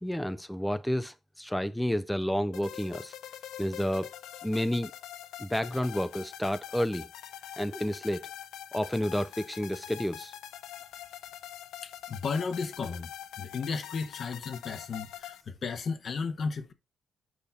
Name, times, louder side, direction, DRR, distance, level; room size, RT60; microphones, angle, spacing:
voice 1, 0.0-3.1 3.6-4.1 4.4-4.9 5.4-7.1 7.6-8.2 8.7-10.3, equal, 5° left, 0.5 m, -30 dB
sound 1, 2.5-15.4, left 11 dB, 75° left, 0.5 m, -44 dB
voice 2, 11.8-13.1 13.4-16.7, left 5 dB, 55° left, 1.0 m, -34 dB
6.4 x 5.2 x 3.9 m
hypercardioid pair, 45°, 0 cm